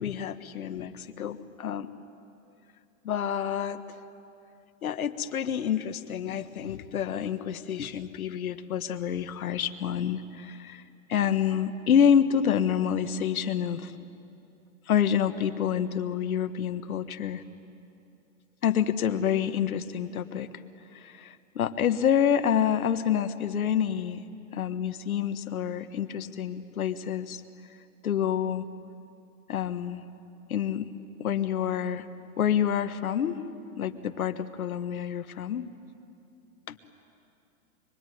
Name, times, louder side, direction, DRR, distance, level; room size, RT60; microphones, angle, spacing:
voice 1, 0.0-1.9 3.0-3.8 4.8-10.8 11.1-13.9 14.9-17.4 18.6-20.5 20.9-24.2 24.5-27.4 28.0-28.7 29.5-30.0 30.5-30.9 31.2-32.0 32.4-33.4 33.8-35.7 36.7-36.8, left 8 dB, 90° left, 9 dB, 1.6 m, -28 dB
26.0 x 24.0 x 9.5 m, 2.7 s
hypercardioid pair, 150°, 41 cm